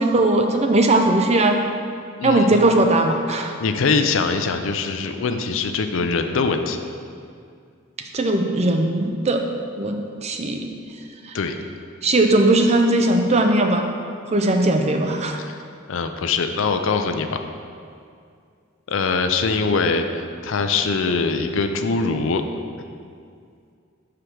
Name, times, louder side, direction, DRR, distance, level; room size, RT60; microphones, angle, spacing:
voice 1, 0.0-1.6 2.2-3.5 8.1-9.4 9.8-10.8 12.0-13.9 14.3-15.4, right 2 dB, 30° right, 4 dB, 0.5 m, -19 dB
voice 2, 2.2-2.6 3.6-6.8 11.3-11.6 15.4-15.5 15.9-17.4 18.9-22.4, left 4 dB, 65° left, 6 dB, 0.5 m, -22 dB
5.7 x 5.0 x 6.1 m, 2.3 s
head